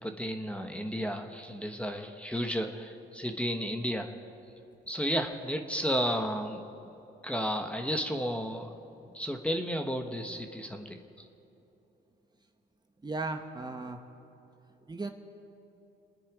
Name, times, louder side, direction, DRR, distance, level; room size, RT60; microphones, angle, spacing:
voice 1, 0.0-4.1 4.9-6.6 7.2-8.7 9.1-11.2, equal, 5° left, 4 dB, 1.2 m, -33 dB
voice 2, 13.0-14.0 14.9-15.1, right 3 dB, 20° right, 5 dB, 1.3 m, -36 dB
28.5 x 9.8 x 5.0 m, 3.0 s
cardioid pair, 90°, 20 cm